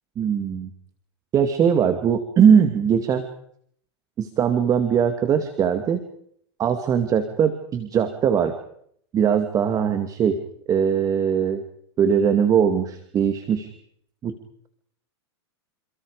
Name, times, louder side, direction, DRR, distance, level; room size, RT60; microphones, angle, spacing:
voice 1, 0.2-0.7 1.3-3.2 4.2-6.0 6.6-8.5 9.1-10.4 10.7-11.6 12.0-13.7 14.2-14.4, right 7 dB, 25° right, 8 dB, 2.3 m, -20 dB
28.5 x 28.0 x 5.1 m, 0.67 s
supercardioid pair, 135°, 14 cm